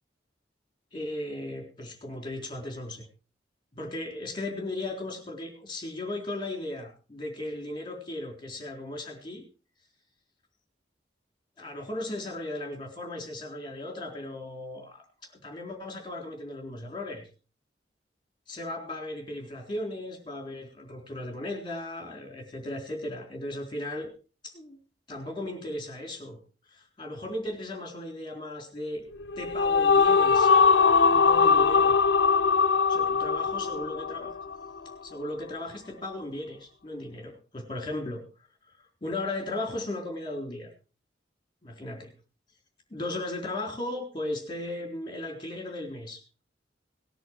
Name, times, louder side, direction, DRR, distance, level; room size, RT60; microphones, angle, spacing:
voice 1, 0.9-3.0 3.7-9.4 11.6-17.3 18.5-24.1 24.4-24.8 25.1-26.4 26.7-29.0 29.4-30.5 31.1-32.0 32.9-34.4 35.0-38.2 38.8-40.7 41.6-42.1 42.9-46.2, left 1 dB, 25° left, 2 dB, 3.9 m, -36 dB
sound 1, 29.2-34.7, left 5 dB, 70° left, 0.6 m, -21 dB
19.0 x 10.5 x 4.7 m, 0.36 s
head